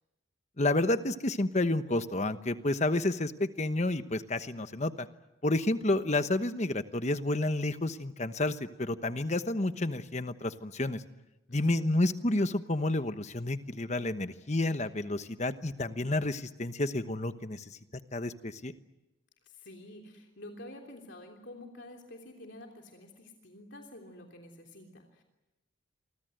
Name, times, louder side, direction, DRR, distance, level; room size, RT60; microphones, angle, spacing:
voice 1, 0.6-5.1 5.4-11.0 11.5-17.6 18.1-18.7, left 2 dB, 35° left, 10 dB, 1.1 m, -30 dB
voice 2, 11.5-12.3 19.4-25.2, left 1 dB, 60° left, 2 dB, 3.3 m, -49 dB
28.5 x 24.5 x 7.9 m, 1.0 s
head